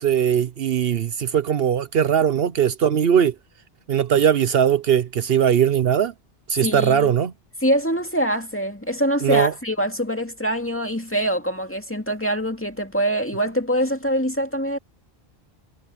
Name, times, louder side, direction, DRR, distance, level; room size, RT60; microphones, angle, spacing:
voice 1, 0.0-3.3 3.9-6.1 6.5-7.3 9.2-9.5, right 8 dB, 70° right, 0.9 m, -19 dB
voice 2, 6.6-7.1 7.6-14.8, equal, 10° left, 2.2 m, -24 dB
omnidirectional pair, 1.1 m